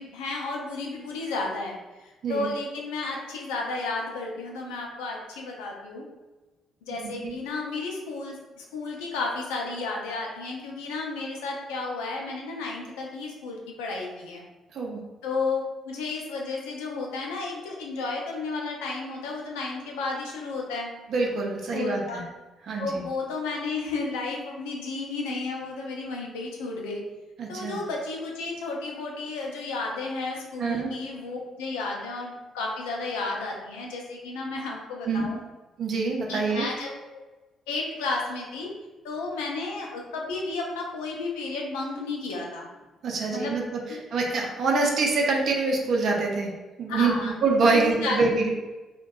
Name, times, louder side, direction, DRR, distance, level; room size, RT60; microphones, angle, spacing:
voice 1, 0.0-1.8 2.3-6.0 6.8-14.4 15.2-20.9 21.7-22.2 22.8-27.0 27.5-35.4 36.3-36.9 37.7-38.7 39.0-42.7 43.3-43.5 43.9-44.0 46.9-47.4 47.7-48.2, left 3 dB, 75° left, -1 dB, 0.4 m, -32 dB
voice 2, 6.9-7.3 14.7-15.0 21.1-22.2 22.7-23.0 27.4-27.8 30.6-30.9 35.0-35.2 35.8-36.7 43.0-46.5 46.8-48.5, right 3 dB, 60° right, -1 dB, 0.5 m, -25 dB
2.5 x 2.1 x 2.2 m, 1.1 s
hypercardioid pair, 45°, 0 cm